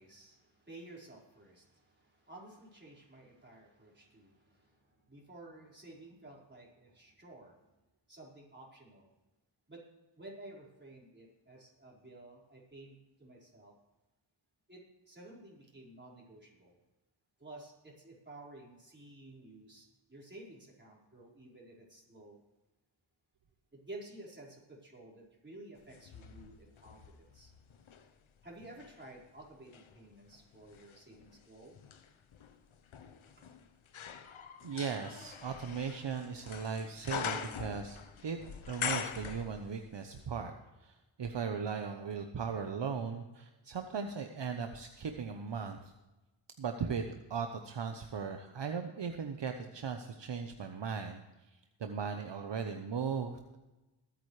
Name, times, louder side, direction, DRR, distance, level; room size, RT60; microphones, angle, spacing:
voice 1, 0.0-7.7 8.1-9.1 9.7-9.8 10.2-13.7 14.7-16.8 17.4-22.4 23.7-27.5 28.4-31.8, right 2 dB, 20° right, -4 dB, 4.9 m, -53 dB
sound 1, 25.9-28.1 28.6-40.0 40.2-40.3, left 7 dB, 80° left, 1.0 m, -43 dB
voice 2, 34.6-38.4 38.7-40.5 40.8-45.9 46.6-51.2 51.8-53.4, right 6 dB, 60° right, 6 dB, 1.0 m, -38 dB
21.0 x 9.1 x 3.3 m, 1.1 s
cardioid pair, 60°, 48 cm